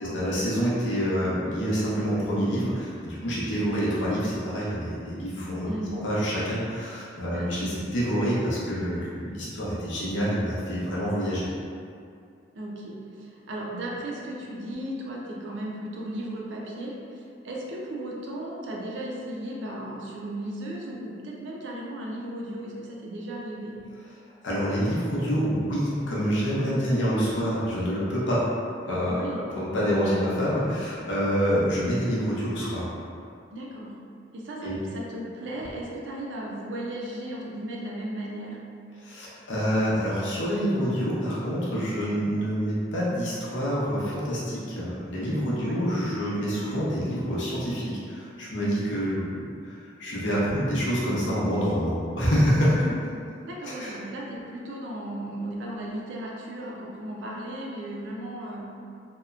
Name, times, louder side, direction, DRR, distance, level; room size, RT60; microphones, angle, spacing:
voice 1, 0.0-5.7 6.0-11.5 24.4-28.5 28.9-32.9 34.6-34.7 39.0-52.8 53.8-53.9, equal, 85° left, -8 dB, 0.7 m, -27 dB
voice 2, 5.7-6.1 7.3-7.5 12.5-23.8 29.1-29.5 33.5-34.0 34.3-38.6 45.6-45.9 49.2-49.3 52.8-53.0 53.4-58.7, right 1 dB, 90° right, -3 dB, 0.5 m, -36 dB
2.8 x 2.0 x 2.4 m, 2.4 s
head